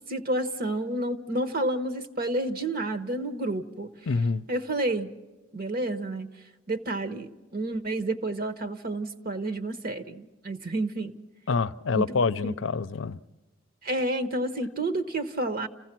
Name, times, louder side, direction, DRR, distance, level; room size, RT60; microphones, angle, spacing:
voice 1, 0.1-3.9 4.5-5.1 5.5-6.3 6.7-11.1 11.9-12.0 12.4-12.5 13.8-15.7, right 2 dB, 50° right, 1.1 m, -30 dB
voice 2, 4.1-4.5 11.5-13.2, left 4 dB, 75° left, 0.6 m, -26 dB
29.0 x 15.5 x 6.0 m
head